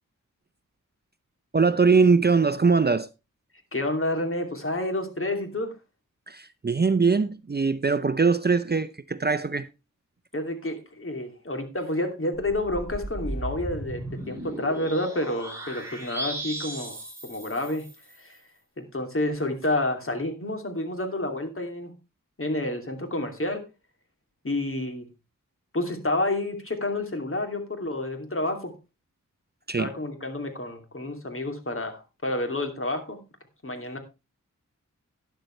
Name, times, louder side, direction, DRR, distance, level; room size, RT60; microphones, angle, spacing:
voice 1, 1.5-3.1 6.3-9.7 29.7-29.9, right 4 dB, 30° right, 0.6 m, -22 dB
voice 2, 3.7-5.7 10.3-14.0 14.3-18.4 18.8-21.9 22.4-23.6 24.4-25.1 25.7-28.7 29.8-33.2 33.6-34.0, left 1 dB, 40° left, 2.8 m, -29 dB
sound 1, 12.4-18.2, right 1 dB, 10° right, 5.3 m, -36 dB
12.0 x 10.5 x 3.2 m
wide cardioid pair, 70°, 32 cm